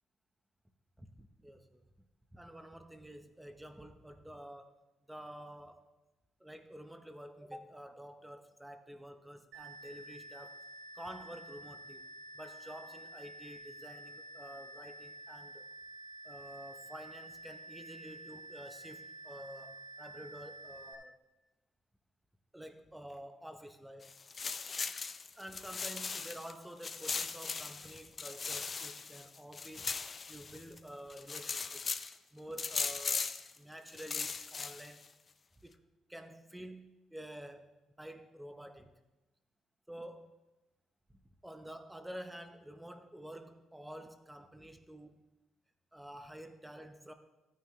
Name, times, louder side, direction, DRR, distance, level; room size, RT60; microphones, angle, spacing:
voice 1, 1.0-1.8 2.3-5.9 6.4-10.7 10.9-15.7 16.2-21.2 22.5-24.2 25.4-30.0 30.3-31.9 32.3-35.1 35.6-38.9 39.9-40.4 41.1-45.3 45.9-47.1, equal, 5° right, 8 dB, 0.8 m, -49 dB
sound 1, 9.5-20.9, right 2 dB, 80° right, 2.7 m, -50 dB
sound 2, 24.0-26.5 26.8-30.8 31.1-32.1 32.6-33.5 33.9-35.0, left 5 dB, 35° left, 0.5 m, -38 dB
14.5 x 9.2 x 3.2 m, 1.0 s
cardioid pair, 110°, 0 cm